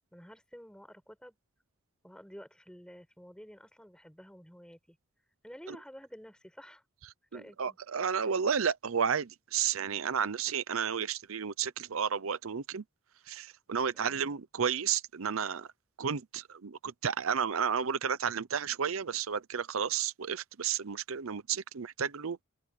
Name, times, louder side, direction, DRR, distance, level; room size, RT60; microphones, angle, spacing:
voice 1, 0.1-1.4 2.0-5.0 5.4-6.8 7.3-7.8 14.0-14.3, equal, 5° left, 7.4 m, -51 dB
voice 2, 7.3-12.8 13.3-15.7 16.0-22.4, right 7 dB, 85° right, 0.7 m, -32 dB
open air
head